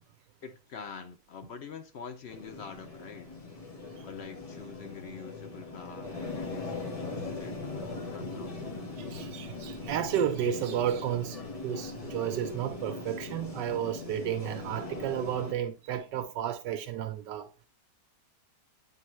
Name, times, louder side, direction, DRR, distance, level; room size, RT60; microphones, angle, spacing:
voice 1, 0.4-3.3 4.0-7.7 8.1-8.9, left 6 dB, 90° left, 0.5 m, -45 dB
sound 1, 2.3-15.5, left 3 dB, 25° left, 1.0 m, -40 dB
voice 2, 9.0-17.7, right 10 dB, 80° right, 1.2 m, -32 dB
9.2 x 3.8 x 3.0 m
omnidirectional pair, 1.9 m